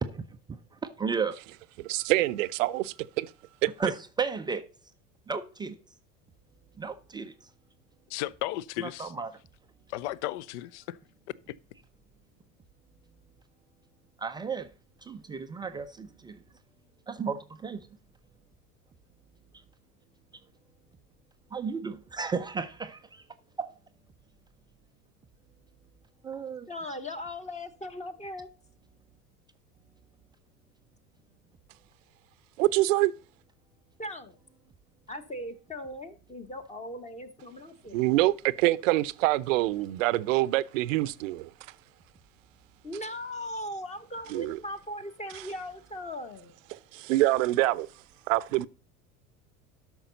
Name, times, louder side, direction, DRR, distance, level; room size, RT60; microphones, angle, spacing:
voice 1, 0.0-1.4 3.8-4.6 5.3-5.8 6.8-7.3 8.8-9.3 14.2-14.7 15.0-16.4 17.1-17.9 21.5-23.2 23.6-23.7 26.2-26.7, right 5 dB, 10° right, 0.4 m, -34 dB
voice 2, 1.8-3.3 3.6-3.7 32.6-33.1 37.9-41.5 44.3-44.6 45.3-45.4 46.7-47.9 48.3-48.7, right 17 dB, 55° right, 0.7 m, -25 dB
voice 3, 8.1-9.1 9.9-11.0 11.5-11.6, left 15 dB, 50° left, 0.6 m, -34 dB
voice 4, 26.7-28.5 34.0-34.4 35.1-38.0 42.8-46.5, left 1 dB, 15° left, 1.1 m, -39 dB
12.5 x 6.1 x 3.9 m
figure-of-eight pair, 75°, 46 cm